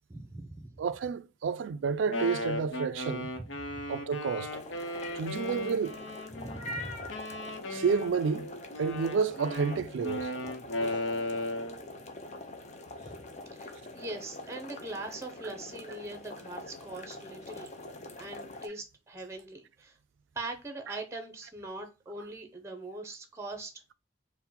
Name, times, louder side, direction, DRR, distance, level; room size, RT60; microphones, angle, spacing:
voice 1, 0.1-0.8 3.6-3.8 6.3-7.0 13.6-17.7 18.2-20.0 20.4-23.7, right 2 dB, 15° right, 0.6 m, -41 dB
voice 2, 0.8-3.3 3.9-4.5 5.1-6.0 7.7-8.5 8.8-10.3 10.8-11.0, right 5 dB, 75° right, 0.3 m, -30 dB
Wind instrument woodwind instrument, 1.9-6.6 7.1-11.8, left 1 dB, 90° left, 0.8 m, -36 dB
sound 1, 4.5-18.7, left 2 dB, 35° left, 0.5 m, -44 dB
4.3 x 2.1 x 3.7 m
head